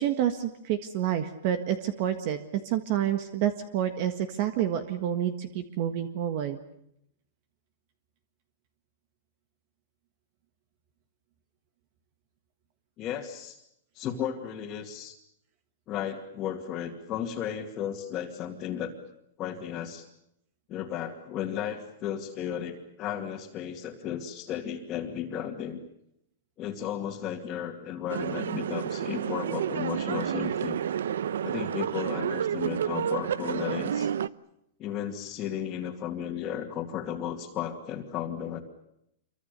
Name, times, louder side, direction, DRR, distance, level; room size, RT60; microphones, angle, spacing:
voice 1, 0.0-6.6, right 10 dB, 40° right, 9 dB, 1.6 m, -28 dB
voice 2, 13.0-13.6 13.9-15.2 15.9-18.9 19.4-20.1 20.7-25.8 26.6-30.8 31.4-34.1 34.8-38.6, left 9 dB, 25° left, -2 dB, 2.5 m, -34 dB
sound 1, 28.1-34.3, right 9 dB, 85° right, 0.9 m, -30 dB
27.5 x 24.5 x 6.8 m, 0.79 s
supercardioid pair, 165°, 0 cm